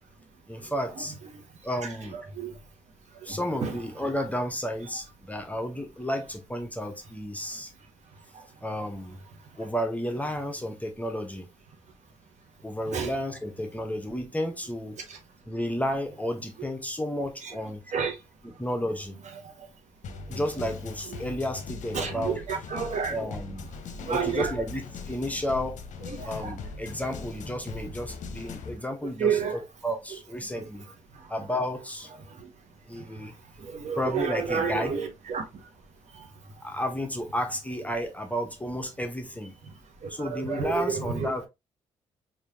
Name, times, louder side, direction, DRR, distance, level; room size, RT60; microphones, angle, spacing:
voice 1, 0.5-1.2 1.6-2.2 3.2-7.7 8.6-9.2 9.6-11.5 12.6-15.0 15.5-17.8 18.6-19.2 20.3-22.4 23.1-23.7 24.1-24.8 25.1-25.8 26.2-30.9 31.3-32.1 32.9-33.3 34.0-34.9 36.6-39.6 40.1-41.5, equal, 10° left, 1.0 m, -32 dB
voice 2, 3.1-3.7 8.3-8.4 12.9-13.1 15.1-15.2 17.4-17.5 17.9-18.2 19.4-19.7 20.3-20.4 21.2-21.3 21.9-23.2 24.0-24.5 26.1-26.5 29.2-29.6 31.1-31.3 32.3-32.5 33.0-33.3 33.6-35.6 36.1-36.3 40.0-41.3, right 6 dB, 50° right, 1.2 m, -31 dB
sound 1, 20.0-28.8, left 4 dB, 55° left, 0.7 m, -40 dB
4.8 x 2.8 x 2.8 m
figure-of-eight pair, 45°, 15 cm